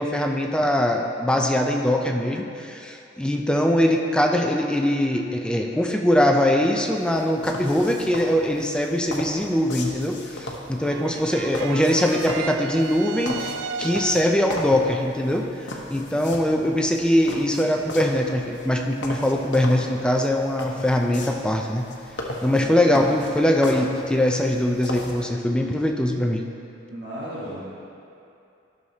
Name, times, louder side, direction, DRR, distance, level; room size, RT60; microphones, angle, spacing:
voice 1, 0.0-13.5 13.8-15.5 15.9-21.9 22.4-26.4, left 1 dB, 5° left, 2 dB, 0.4 m, -22 dB
sound 1, 7.0-25.2, left 1 dB, 70° left, 0.9 m, -37 dB
sound 2, 10.8-14.6, right 6 dB, 80° right, 0.3 m, -34 dB
voice 2, 26.9-27.6, equal, 60° right, -9 dB, 1.2 m, -34 dB
12.5 x 6.4 x 2.8 m, 2.7 s
head